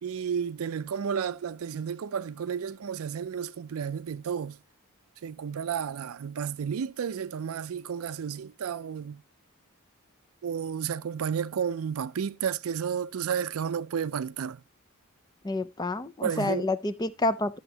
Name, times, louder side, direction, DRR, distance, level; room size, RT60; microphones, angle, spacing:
voice 1, 0.0-4.6 5.2-9.2 10.4-14.6 16.2-16.8, right 7 dB, 75° right, 0.4 m, -32 dB
voice 2, 15.4-17.6, left 2 dB, 20° left, 0.5 m, -29 dB
12.0 x 6.9 x 2.7 m
head